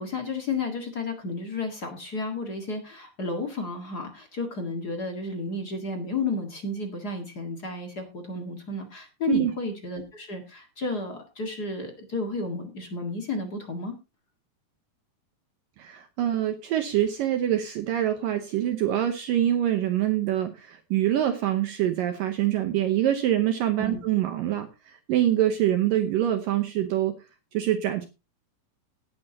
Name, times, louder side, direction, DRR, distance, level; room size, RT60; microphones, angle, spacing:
voice 1, 0.0-13.9 23.8-24.0, left 3 dB, 50° left, 3 dB, 1.1 m, -32 dB
voice 2, 15.8-27.2 27.5-28.1, right 12 dB, 75° right, 7 dB, 2.1 m, -25 dB
18.0 x 9.9 x 2.9 m, 0.28 s
omnidirectional pair, 5.0 m